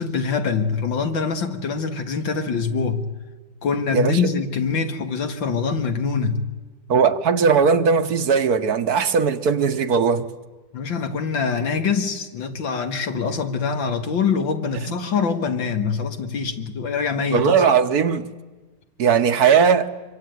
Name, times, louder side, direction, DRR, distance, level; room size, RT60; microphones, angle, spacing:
voice 1, 0.0-3.1 3.6-6.4 10.7-17.6, left 5 dB, 85° left, 2.6 m, -24 dB
voice 2, 6.9-10.3 14.9-15.1 17.3-18.3 19.0-19.9, right 6 dB, 60° right, 1.4 m, -18 dB
25.0 x 24.5 x 9.4 m
omnidirectional pair, 2.0 m